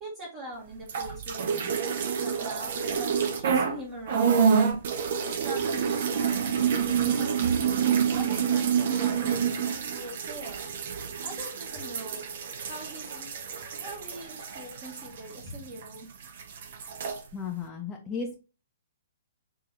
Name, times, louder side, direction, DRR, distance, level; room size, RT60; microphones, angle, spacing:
voice 1, 0.0-1.8 2.2-4.8 5.2-7.8 8.1-10.7 11.2-12.2 12.7-13.3 13.7-16.1, right 1 dB, 25° right, -3 dB, 1.1 m, -43 dB
sound 1, 0.8-3.8 4.1-16.0 16.2-17.2, right 7 dB, 50° right, 0.7 m, -28 dB
voice 2, 17.3-18.4, left 5 dB, 15° left, 0 dB, 0.7 m, -34 dB
6.0 x 2.8 x 2.6 m, 0.33 s
figure-of-eight pair, 120°, 0 cm